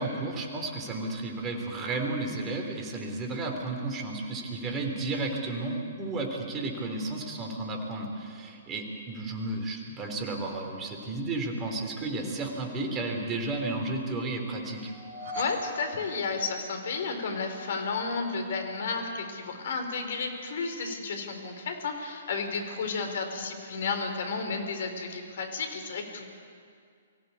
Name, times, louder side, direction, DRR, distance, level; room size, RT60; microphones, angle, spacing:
voice 1, 0.0-14.9, right 2 dB, 20° right, 3 dB, 3.8 m, -33 dB
sound 1, 14.8-17.1, left 1 dB, 45° right, 4.1 m, -39 dB
voice 2, 15.3-26.2, left 4 dB, 55° left, 5 dB, 3.8 m, -32 dB
24.5 x 15.5 x 8.5 m, 2.2 s
figure-of-eight pair, 120°, 0 cm